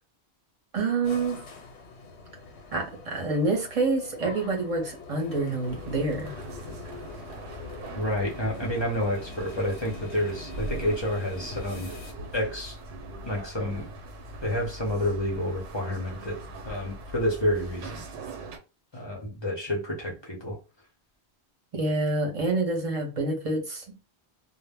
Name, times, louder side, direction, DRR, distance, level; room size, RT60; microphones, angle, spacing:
voice 1, 0.7-1.4 2.7-6.3 21.7-23.8, right 3 dB, 35° right, 0.8 m, -27 dB
sound 1, 1.0-12.1, left 4 dB, 80° left, 1.0 m, -44 dB
sound 2, 5.6-18.6, right 2 dB, 80° right, 0.9 m, -41 dB
voice 2, 7.9-11.9 12.3-12.8 13.2-13.9 14.4-16.4 16.6-18.0 18.9-20.6, left 1 dB, 30° left, 0.6 m, -29 dB
2.1 x 2.0 x 3.4 m
omnidirectional pair, 1.1 m